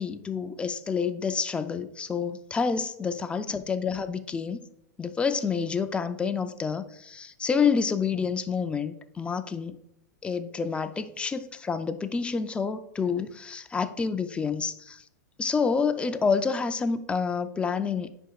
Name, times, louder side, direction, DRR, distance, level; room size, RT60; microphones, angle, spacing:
voice 1, 0.0-4.6 5.0-9.8 10.2-15.0 15.4-18.1, left 5 dB, 10° left, 10 dB, 0.4 m, -28 dB
10.0 x 4.4 x 2.3 m, 0.78 s
hypercardioid pair, 125°, 10 cm